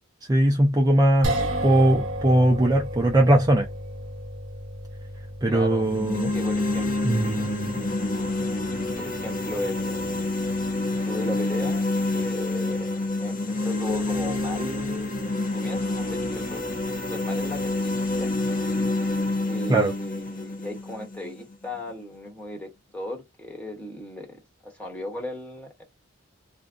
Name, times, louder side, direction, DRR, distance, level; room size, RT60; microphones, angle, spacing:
voice 1, 0.3-1.3 1.6-3.7 5.4-6.3 7.0-7.8 19.7-19.9, right 1 dB, 20° right, 0.4 m, -20 dB
sound 1, 1.2-13.5, right 1 dB, 70° right, 0.8 m, -35 dB
voice 2, 5.4-5.9 6.3-6.9 7.4-7.5 9.0-10.3 10.9-11.9 12.1-15.2 15.5-18.3 19.5-25.8, left 1 dB, 5° left, 1.0 m, -36 dB
sound 2, 5.7-21.8, left 2 dB, 40° left, 0.8 m, -28 dB
2.5 x 2.1 x 3.6 m
head